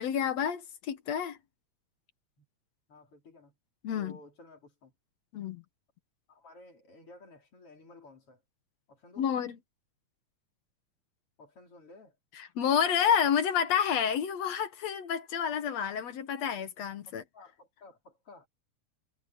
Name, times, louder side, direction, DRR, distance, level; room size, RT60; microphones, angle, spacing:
voice 1, 0.0-1.4 3.8-4.2 5.3-5.6 9.2-9.6 12.4-17.2, left 8 dB, 60° left, 2.2 m, -29 dB
voice 2, 2.9-3.6 4.0-4.9 6.3-8.4 8.9-9.3 11.4-12.2 17.1-18.5, left 2 dB, 45° left, 4.7 m, -54 dB
omnidirectional pair, 3.7 m